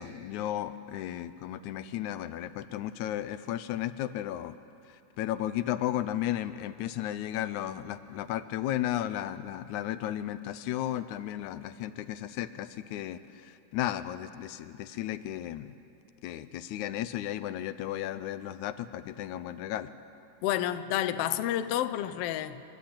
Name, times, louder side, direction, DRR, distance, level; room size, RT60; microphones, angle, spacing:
voice 1, 0.0-4.6 4.9-15.7 16.2-19.9, left 12 dB, 90° left, 13 dB, 2.1 m, -34 dB
voice 2, 20.4-22.6, left 12 dB, 70° left, 12 dB, 1.5 m, -30 dB
28.5 x 12.0 x 8.7 m, 2.7 s
omnidirectional pair, 3.4 m